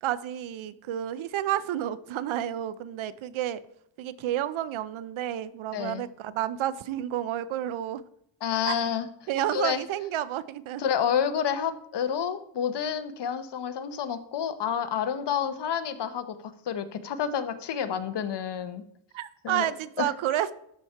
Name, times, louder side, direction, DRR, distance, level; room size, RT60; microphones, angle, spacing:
voice 1, 0.0-3.6 4.0-8.0 8.7-8.8 9.3-10.8 19.1-20.5, right 12 dB, 85° right, 16 dB, 0.6 m, -30 dB
voice 2, 5.7-6.0 8.4-9.1 9.5-9.8 10.8-18.8 19.4-19.7 20.0-20.1, left 8 dB, 60° left, 10 dB, 0.9 m, -29 dB
12.5 x 4.3 x 4.5 m, 0.71 s
cardioid pair, 105°, 46 cm